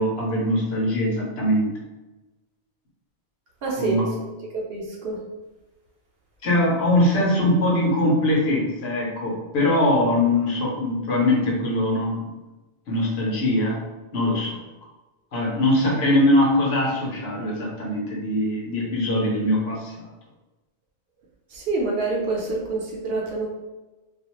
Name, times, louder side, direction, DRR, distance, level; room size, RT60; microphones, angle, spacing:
voice 1, 0.0-1.7 3.8-4.1 6.4-12.4 12.9-13.8 14.1-14.6 15.3-20.1, left 1 dB, 75° left, -3 dB, 1.0 m, -22 dB
voice 2, 3.6-3.9 4.7-5.2 21.5-23.5, right 3 dB, 70° right, -2 dB, 0.8 m, -26 dB
2.4 x 2.2 x 2.9 m, 1.1 s
omnidirectional pair, 1.1 m